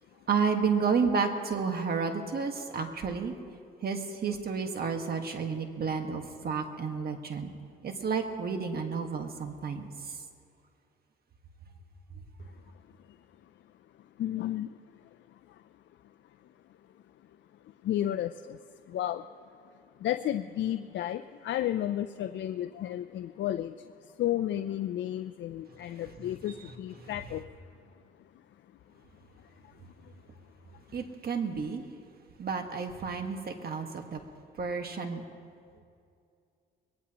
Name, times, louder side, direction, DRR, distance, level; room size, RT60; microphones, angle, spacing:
voice 1, 0.3-3.3 3.8-7.5 7.8-10.2 27.0-27.1 30.9-31.8 32.4-34.2 34.6-35.2, right 5 dB, 50° right, 5 dB, 1.7 m, -31 dB
voice 2, 14.0-15.6 17.6-19.3 19.6-27.5 28.9-30.1 30.7-30.8, left 12 dB, 65° left, 9 dB, 0.5 m, -34 dB
22.0 x 18.5 x 3.0 m, 2.4 s
cardioid pair, 90°, 20 cm